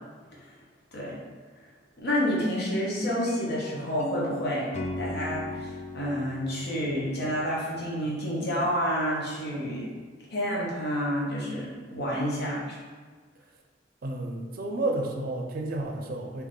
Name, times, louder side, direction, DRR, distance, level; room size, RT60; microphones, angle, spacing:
voice 1, 2.0-4.7 5.0-9.9 10.3-12.8, equal, 60° left, -5 dB, 1.1 m, -29 dB
sound 1, 2.6-7.7, left 1 dB, 40° left, 0.3 m, -38 dB
voice 2, 14.0-16.5, right 2 dB, 55° right, 3 dB, 0.5 m, -31 dB
3.6 x 2.9 x 3.8 m, 1.5 s
head